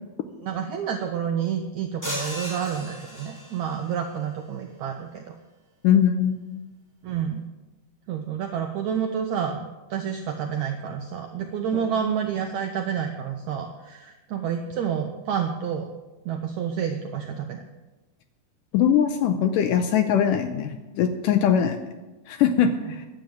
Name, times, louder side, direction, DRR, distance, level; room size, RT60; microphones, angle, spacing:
voice 1, 0.4-5.3 7.0-7.4 8.1-15.9 16.2-17.6, right 8 dB, 85° right, 4 dB, 1.6 m, -29 dB
sound 1, 2.0-3.8, equal, 5° left, 2.4 m, -35 dB
voice 2, 5.8-6.6 11.7-11.8 18.7-21.8 22.3-23.1, left 8 dB, 80° left, 7 dB, 2.0 m, -21 dB
10.5 x 7.8 x 8.7 m, 1.1 s
omnidirectional pair, 4.3 m